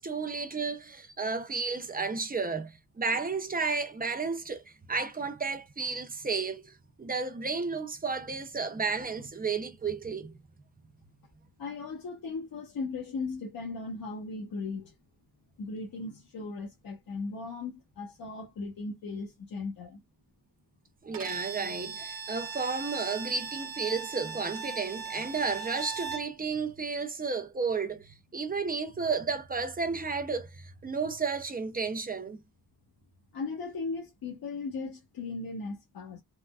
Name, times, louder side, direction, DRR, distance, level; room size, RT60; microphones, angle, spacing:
voice 1, 0.0-10.4 21.0-32.4, right 4 dB, 25° right, 0.5 m, -32 dB
voice 2, 11.6-14.9 15.6-20.0 33.3-36.2, left 4 dB, 80° left, 1.0 m, -37 dB
Bowed string instrument, 21.1-26.3, right 5 dB, 75° right, 0.7 m, -39 dB
3.5 x 2.2 x 2.2 m
wide cardioid pair, 180°, 35 cm